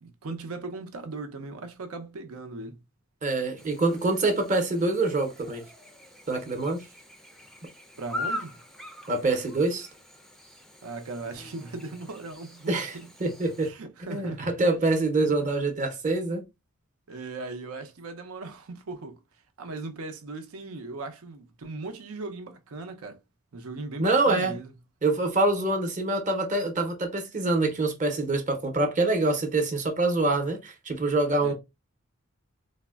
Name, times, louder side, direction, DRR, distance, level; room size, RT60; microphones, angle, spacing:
voice 1, 0.0-2.8 8.0-8.6 10.8-13.1 13.6-14.5 17.1-19.2 19.6-23.2 23.5-24.7 31.4-31.5, right 3 dB, 90° right, 0.6 m, -38 dB
voice 2, 3.2-5.6 6.3-6.8 9.1-9.9 12.7-12.9 13.2-13.7 14.0-16.4 24.0-24.6 25.0-31.5, right 2 dB, 35° right, 0.7 m, -25 dB
Chirp tweet / Buzz, 3.6-13.7, left 1 dB, ahead, 0.3 m, -42 dB
3.5 x 2.1 x 2.2 m
head